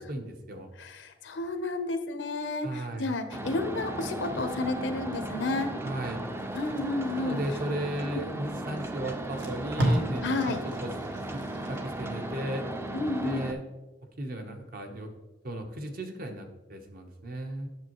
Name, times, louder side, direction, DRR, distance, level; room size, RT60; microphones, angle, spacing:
voice 1, 0.0-0.7 2.6-3.1 5.8-6.2 7.1-10.9 11.2-12.6 13.2-13.6 14.2-15.1 15.4-17.7, right 1 dB, 50° right, 5 dB, 0.9 m, -36 dB
voice 2, 0.8-5.7 6.5-7.4 8.0-8.2 10.2-10.6 12.9-13.5, left 2 dB, 85° left, 8 dB, 0.8 m, -31 dB
sound 1, 3.3-13.5, right 1 dB, 15° right, 0.4 m, -36 dB
Packing tape duct tape, 6.4-8.1 8.8-8.9 9.2-12.2 12.6-12.8, right 1 dB, 75° right, 1.6 m, -33 dB
8.8 x 6.5 x 3.0 m, 1.1 s
head